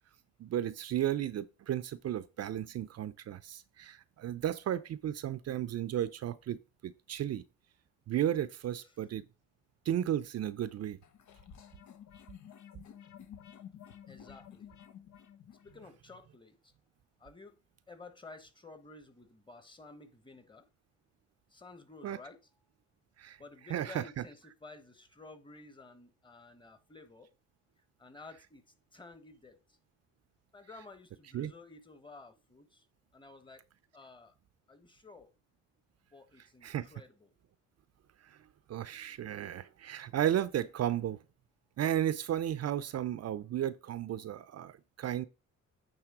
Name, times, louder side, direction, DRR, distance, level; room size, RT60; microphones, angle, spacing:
voice 1, 0.4-7.4 8.1-9.2 9.8-11.0 22.0-22.2 23.2-23.4 23.7-24.2 31.3-31.5 36.6-36.9 38.2-38.4 38.7-41.2 41.8-45.3, right 11 dB, 55° right, 0.6 m, -34 dB
sound 1, 11.0-16.0, left 9 dB, 70° left, 1.1 m, -52 dB
voice 2, 14.1-14.7 15.6-16.7 17.2-17.6 17.9-20.7 21.5-22.4 23.4-27.3 28.0-28.6 28.9-29.8 30.5-32.9 33.1-33.7 33.9-34.4 34.7-35.3 36.1-37.3, left 3 dB, 15° left, 1.2 m, -53 dB
9.1 x 3.4 x 4.8 m
cardioid pair, 90°, 30 cm